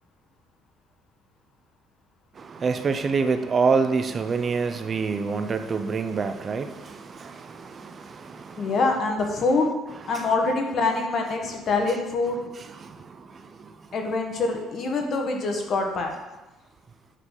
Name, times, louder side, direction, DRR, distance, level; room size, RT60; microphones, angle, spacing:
voice 1, 2.4-8.8 10.1-10.3 12.6-13.7, right 5 dB, 35° right, 9 dB, 0.6 m, -27 dB
voice 2, 8.6-9.7 10.1-12.4 13.9-16.1, left 3 dB, 50° left, 3 dB, 1.5 m, -25 dB
9.8 x 4.1 x 6.5 m, 1.1 s
cardioid pair, 110°, 0 cm